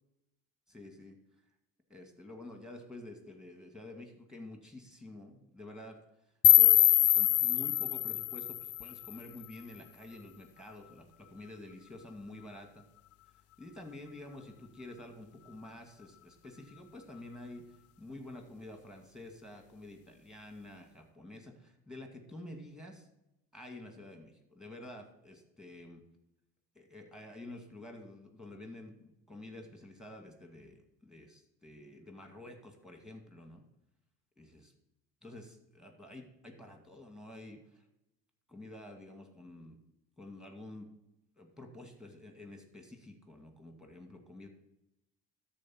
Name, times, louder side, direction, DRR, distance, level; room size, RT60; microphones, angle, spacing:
voice 1, 0.7-1.2 1.9-6.0 6.6-12.8 13.6-23.1 23.5-26.0 26.8-33.7 34.4-34.7 35.2-37.8 38.5-39.8 40.2-40.9 41.4-44.5, left 1 dB, ahead, 4 dB, 2.2 m, -49 dB
sound 1, 6.4-9.5, left 15 dB, 50° left, 0.4 m, -24 dB
13.0 x 4.4 x 5.8 m, 0.87 s
supercardioid pair, 90°, 31 cm